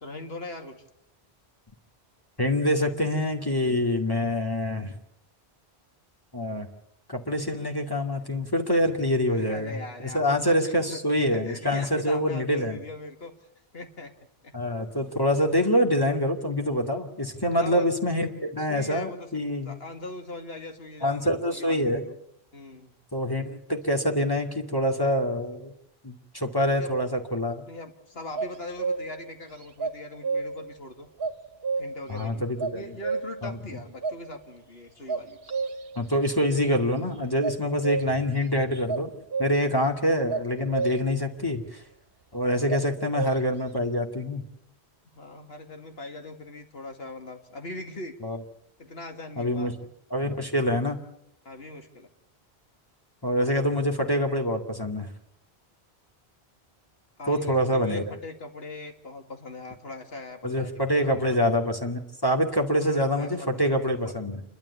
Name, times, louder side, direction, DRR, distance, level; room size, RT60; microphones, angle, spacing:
voice 1, 0.0-0.8 9.3-11.0 11.3-13.3 13.7-14.1 14.4-14.5 17.5-17.9 18.7-19.4 19.6-22.1 22.5-23.0 26.8-26.9 27.7-31.1 31.8-35.4 45.1-48.2 48.8-49.7 51.4-52.1 57.2-61.4 62.8-64.1, left 2 dB, 70° left, 5 dB, 2.5 m, -40 dB
voice 2, 2.4-5.0 6.3-6.7 7.1-9.8 10.0-12.8 14.5-19.8 21.0-22.0 23.1-25.7 26.0-27.7 32.1-32.9 33.4-33.6 36.0-39.1 39.4-41.8 42.3-44.4 48.2-48.4 49.4-49.7 50.1-51.0 53.2-55.1 57.3-58.1 60.4-64.4, equal, 20° left, 3 dB, 2.3 m, -25 dB
sound 1, 28.4-29.3 29.8-30.7 31.2-32.2 32.6-33.5 34.0-34.2 35.1-36.1 37.4-38.3 38.9-39.8 40.3-41.2 42.7-43.6, right 4 dB, 65° right, 1.4 m, -30 dB
29.0 x 12.5 x 8.3 m, 0.80 s
omnidirectional pair, 1.1 m